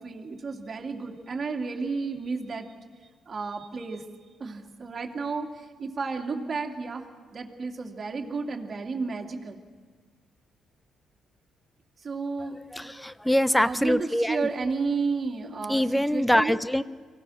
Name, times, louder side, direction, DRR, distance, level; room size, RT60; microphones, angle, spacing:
voice 1, 0.0-2.7 3.3-4.0 4.4-9.6 12.0-12.6 13.6-16.6, right 4 dB, 40° right, 2 dB, 2.6 m, -32 dB
voice 2, 12.7-14.5 15.7-16.8, left 1 dB, 5° left, 16 dB, 0.5 m, -24 dB
25.0 x 18.0 x 6.4 m, 1.5 s
cardioid pair, 90°, 0 cm